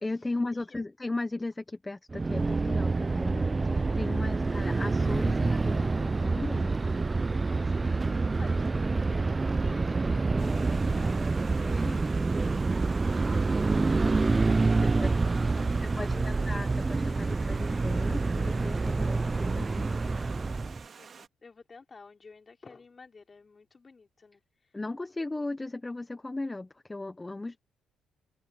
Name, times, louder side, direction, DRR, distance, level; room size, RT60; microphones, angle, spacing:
voice 1, 0.0-6.7 11.6-12.0 14.5-15.1 15.8-19.9 24.7-27.6, left 2 dB, 15° left, 1.2 m, -37 dB
sound 1, 2.1-20.8, right 3 dB, 25° right, 0.6 m, -27 dB
voice 2, 7.4-11.2 11.5-12.4 14.8-16.3 21.0-24.8, left 4 dB, 30° left, 4.3 m, -51 dB
Stream, 10.4-21.3, right 6 dB, 45° right, 2.1 m, -50 dB
open air
cardioid pair, 90°, 0 cm